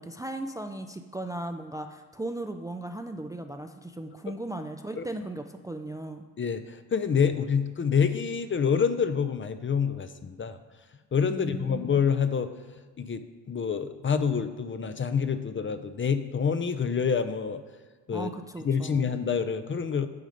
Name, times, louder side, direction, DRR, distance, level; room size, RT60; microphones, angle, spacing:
voice 1, 0.0-6.2 11.3-11.9 18.1-19.1, right 2 dB, 10° right, 6 dB, 0.4 m, -37 dB
voice 2, 6.4-10.6 11.1-12.5 13.0-17.6 18.1-18.3 18.6-20.1, left 6 dB, 30° left, 10 dB, 0.6 m, -27 dB
9.5 x 3.8 x 5.1 m, 1.4 s
hypercardioid pair, 50°, 38 cm